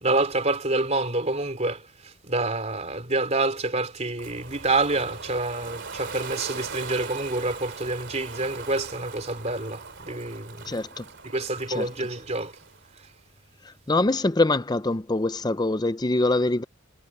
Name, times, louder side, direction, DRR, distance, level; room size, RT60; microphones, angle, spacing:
voice 1, 0.0-1.8 2.2-10.8 11.3-12.5, right 2 dB, 30° right, 3.4 m, -27 dB
Ocean, 4.2-13.0, right 5 dB, 55° right, 2.9 m, -40 dB
voice 2, 10.7-11.0 11.7-11.9 13.9-16.6, left 2 dB, 20° left, 0.6 m, -24 dB
head